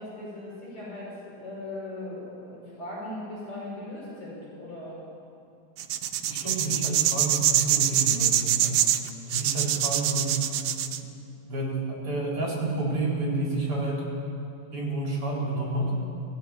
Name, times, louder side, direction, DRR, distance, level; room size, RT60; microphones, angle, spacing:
voice 1, 0.0-5.0 10.9-11.3, left 1 dB, 50° left, -6 dB, 6.6 m, -39 dB
sound 1, 5.8-11.0, right 11 dB, 75° right, 2.0 m, -24 dB
voice 2, 6.3-8.9 9.3-10.4 11.5-14.0 14.7-16.0, right 2 dB, 35° right, -3 dB, 5.1 m, -29 dB
19.0 x 15.0 x 9.2 m, 2.6 s
omnidirectional pair, 4.1 m